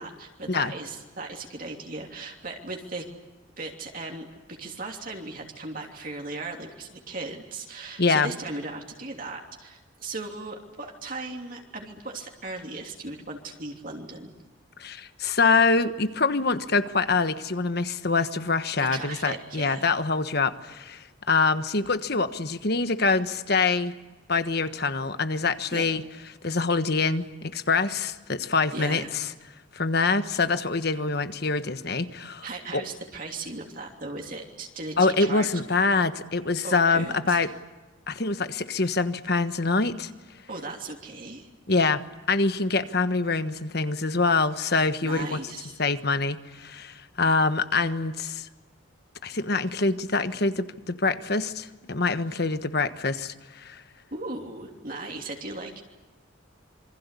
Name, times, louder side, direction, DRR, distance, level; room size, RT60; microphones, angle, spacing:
voice 1, 0.0-3.0 3.6-14.3 18.8-19.8 25.7-25.9 28.7-29.1 32.4-35.5 36.6-37.4 40.5-41.5 45.0-45.8 54.1-55.8, right 3 dB, 45° right, 1 dB, 3.1 m, -37 dB
voice 2, 8.0-8.3 14.8-23.9 24.3-26.0 26.4-29.3 29.7-32.4 32.7-32.8 35.0-37.5 38.1-40.1 41.7-42.0 42.3-45.4 45.8-48.5 49.2-53.8, left 4 dB, 50° left, 11 dB, 1.4 m, -25 dB
27.5 x 24.5 x 8.4 m, 1.1 s
head